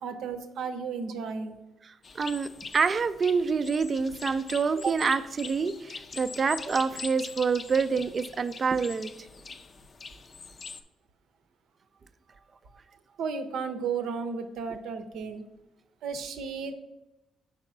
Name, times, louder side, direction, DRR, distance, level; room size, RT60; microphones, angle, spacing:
voice 1, 0.0-1.6 13.2-15.4 16.0-16.7, right 5 dB, 80° right, 8 dB, 0.7 m, -34 dB
voice 2, 1.8-9.1, right 5 dB, 40° right, 13 dB, 0.4 m, -27 dB
sound 1, 2.0-10.8, left 4 dB, 40° left, 0.5 m, -43 dB
4.8 x 4.4 x 6.0 m, 0.97 s
cardioid pair, 90°, 0 cm